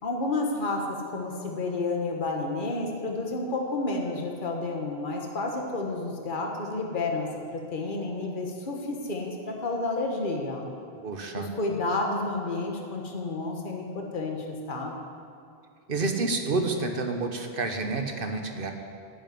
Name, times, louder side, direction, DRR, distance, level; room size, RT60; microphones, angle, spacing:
voice 1, 0.0-7.3 7.5-10.7 11.3-15.0, left 2 dB, 50° left, 0 dB, 1.6 m, -30 dB
voice 2, 11.0-11.5 15.9-18.7, right 3 dB, 55° right, 5 dB, 1.4 m, -29 dB
11.5 x 9.1 x 9.5 m, 2.3 s
omnidirectional pair, 1.1 m